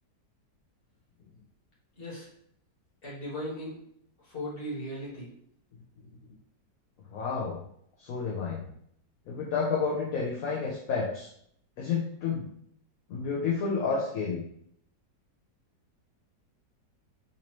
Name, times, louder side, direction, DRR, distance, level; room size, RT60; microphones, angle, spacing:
voice 1, 2.0-2.3 3.0-3.8 4.2-5.3, equal, 35° left, -6 dB, 1.5 m, -37 dB
voice 2, 7.1-7.6 8.0-8.7 9.3-11.3 11.8-12.4 13.1-14.4, left 5 dB, 65° left, -3 dB, 1.0 m, -30 dB
4.0 x 2.7 x 3.0 m, 0.68 s
omnidirectional pair, 1.9 m